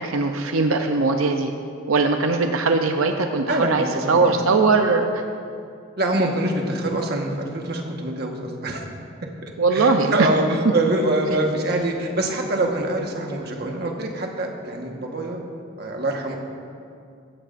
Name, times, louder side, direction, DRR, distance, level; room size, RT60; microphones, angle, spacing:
voice 1, 0.0-1.5 1.9-5.1 9.6-10.3, right 3 dB, 90° right, 5 dB, 0.6 m, -20 dB
voice 2, 3.5-4.4 6.0-8.8 9.4-15.4 15.8-16.4, right 1 dB, 50° right, 1 dB, 1.4 m, -25 dB
16.0 x 14.0 x 2.6 m, 2.4 s
head